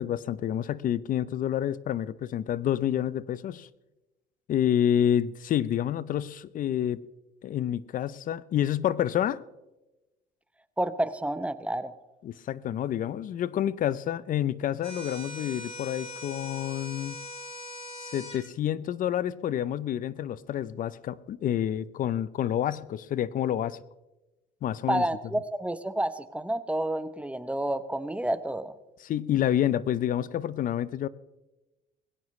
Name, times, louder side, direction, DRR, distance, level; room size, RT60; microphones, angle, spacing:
voice 1, 0.0-3.7 4.5-7.0 7.4-9.4 12.2-17.2 18.1-23.8 24.6-25.0 29.0-31.1, left 10 dB, 55° left, 18 dB, 0.6 m, -28 dB
voice 2, 10.8-11.9 24.9-28.7, right 1 dB, 5° right, 12 dB, 0.8 m, -29 dB
sound 1, 14.8-18.4, left 1 dB, 35° left, 3.9 m, -41 dB
20.5 x 17.0 x 3.2 m, 1.0 s
cardioid pair, 110°, 17 cm